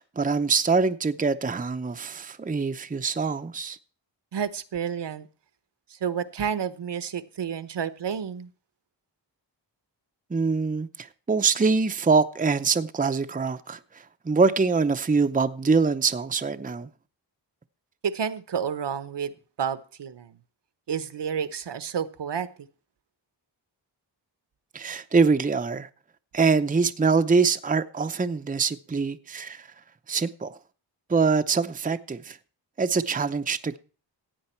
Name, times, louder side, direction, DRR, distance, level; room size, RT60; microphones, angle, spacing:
voice 1, 0.0-3.8 10.3-16.9 24.7-25.9 26.3-29.7 30.1-30.6 31.1-32.4 32.8-33.8, right 4 dB, 20° right, 0.7 m, -24 dB
voice 2, 4.3-5.3 5.9-8.5 18.0-19.3 19.6-20.4 20.9-22.7, right 7 dB, 70° right, 1.0 m, -30 dB
15.5 x 9.2 x 4.4 m
wide cardioid pair, 115°, 44 cm